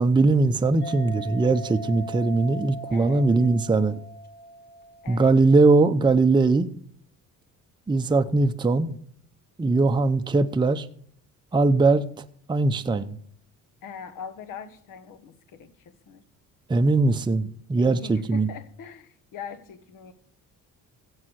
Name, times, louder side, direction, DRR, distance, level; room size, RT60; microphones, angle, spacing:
voice 1, 0.0-4.0 5.1-6.7 7.9-9.0 9.6-10.9 11.5-13.2 16.7-18.5, right 3 dB, 15° right, 0.6 m, -21 dB
sound 1, 0.8-5.6, right 1 dB, 30° left, 1.8 m, -40 dB
voice 2, 2.9-3.3 5.0-5.4 13.8-16.2 17.7-20.1, left 6 dB, 70° left, 1.4 m, -41 dB
16.0 x 5.6 x 6.4 m
cardioid pair, 100°, 34 cm